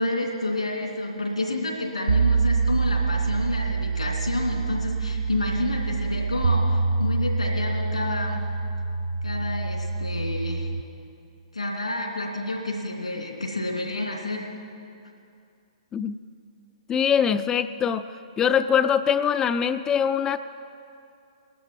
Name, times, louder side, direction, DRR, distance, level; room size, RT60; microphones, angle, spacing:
voice 1, 0.0-8.5 9.2-10.7 11.5-14.5, left 2 dB, 85° left, 1 dB, 2.7 m, -29 dB
sound 1, 2.1-10.8, right 4 dB, 70° right, 0.6 m, -25 dB
voice 2, 16.9-18.1 18.4-20.4, left 8 dB, 20° left, 11 dB, 0.4 m, -22 dB
19.5 x 12.5 x 4.6 m, 2.5 s
figure-of-eight pair, 120°, 3 cm